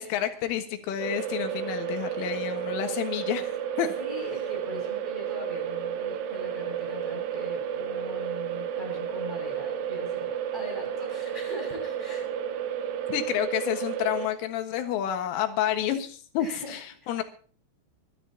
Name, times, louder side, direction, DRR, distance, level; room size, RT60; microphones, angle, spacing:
voice 1, 0.0-3.9 13.1-16.8 17.1-17.2, left 10 dB, 90° left, 6 dB, 4.0 m, -29 dB
sound 1, 1.0-14.3, right 9 dB, 80° right, 3.7 m, -32 dB
voice 2, 3.9-12.3 16.4-17.1, left 1 dB, 10° right, 0 dB, 6.1 m, -41 dB
25.0 x 13.0 x 2.9 m, 0.42 s
omnidirectional pair, 5.6 m